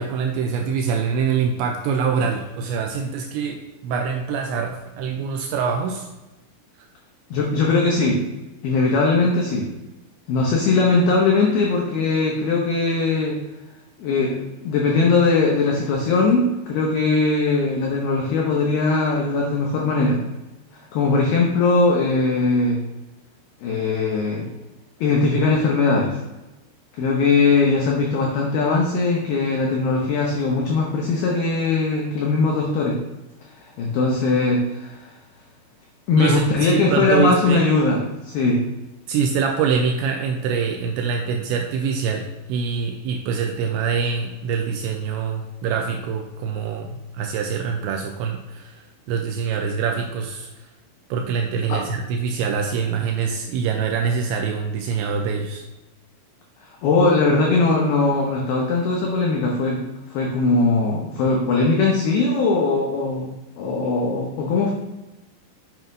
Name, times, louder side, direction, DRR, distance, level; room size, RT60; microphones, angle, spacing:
voice 1, 0.0-6.1 36.2-37.6 39.1-50.5 51.1-55.6, right 6 dB, 85° right, 3 dB, 2.6 m, -24 dB
voice 2, 7.3-8.2 8.6-9.7 10.3-13.4 14.0-20.2 20.9-22.8 23.6-24.5 25.0-26.2 26.9-33.0 33.6-35.1 36.1-38.0 38.2-38.6 51.7-51.8 56.8-59.8 60.1-63.3 63.6-64.7, left 3 dB, 85° left, -1 dB, 2.2 m, -20 dB
7.9 x 7.2 x 2.6 m, 1.0 s
omnidirectional pair, 5.7 m